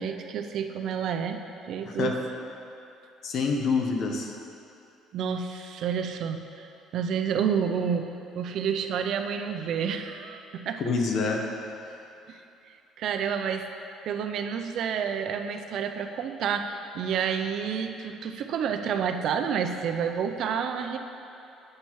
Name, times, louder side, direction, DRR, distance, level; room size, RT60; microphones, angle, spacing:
voice 1, 0.0-2.2 5.1-6.7 6.9-8.1 8.4-10.8 12.3-12.4 13.0-13.7 14.0-21.0, right 7 dB, 55° right, 6 dB, 0.4 m, -29 dB
voice 2, 1.9-2.2 3.2-4.3 10.8-11.4, left 4 dB, 50° left, 2 dB, 0.7 m, -26 dB
8.7 x 5.5 x 3.0 m, 2.7 s
cardioid pair, 150°, 0 cm